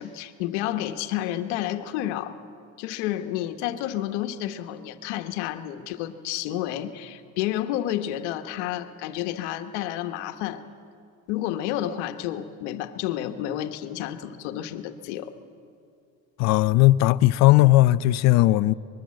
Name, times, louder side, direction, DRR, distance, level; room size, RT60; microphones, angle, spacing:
voice 1, 0.0-2.4 2.8-10.6 11.3-15.3, left 12 dB, 85° left, 1.4 m, -30 dB
voice 2, 16.4-18.7, left 16 dB, 50° left, 0.6 m, -17 dB
24.5 x 21.0 x 7.7 m
cardioid pair, 135°, 34 cm